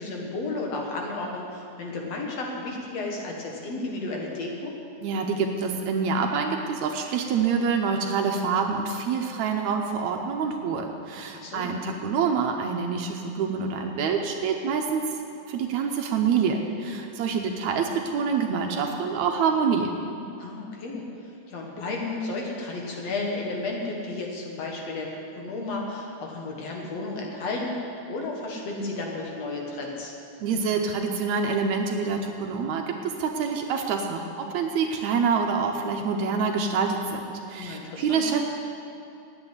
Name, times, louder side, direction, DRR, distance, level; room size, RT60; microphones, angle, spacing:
voice 1, 0.0-4.7 11.3-11.8 20.4-21.0 21.5-25.1 25.4-27.7 28.1-30.1 37.5-38.2, left 2 dB, 60° left, 0 dB, 2.3 m, -33 dB
voice 2, 5.0-15.2 15.5-19.9 30.4-37.2 37.5-38.4, right 5 dB, 75° right, 3 dB, 1.9 m, -26 dB
9.5 x 8.6 x 9.7 m, 2.6 s
omnidirectional pair, 3.6 m